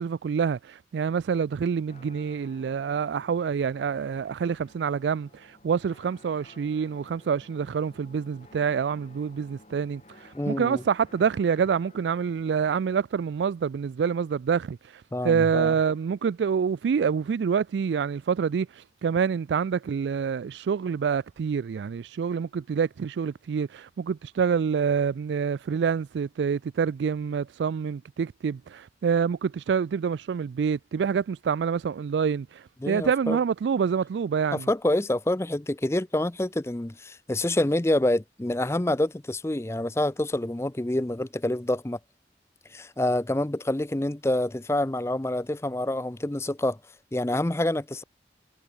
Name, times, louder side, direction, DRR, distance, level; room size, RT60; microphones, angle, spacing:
voice 1, 0.0-34.7, right 6 dB, 85° right, 0.3 m, -27 dB
sound 1, 1.9-12.7, left 1 dB, 35° left, 5.7 m, -54 dB
voice 2, 10.3-10.8 15.1-15.7 32.8-33.4 34.5-42.0 42.7-46.8 47.1-48.0, left 1 dB, 15° left, 0.5 m, -27 dB
head